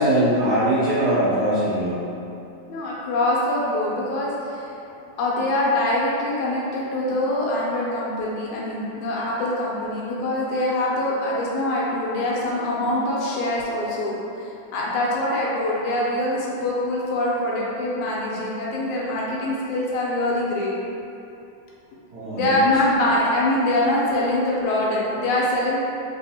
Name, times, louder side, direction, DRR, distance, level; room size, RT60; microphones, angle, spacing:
voice 1, 0.0-2.0 22.1-22.6, right 1 dB, 90° right, -12 dB, 1.1 m, -21 dB
voice 2, 2.7-4.6 5.2-14.1 14.4-20.7 22.3-25.8, left 1 dB, 75° left, -5 dB, 2.0 m, -24 dB
4.2 x 3.8 x 2.7 m, 2.7 s
omnidirectional pair, 3.6 m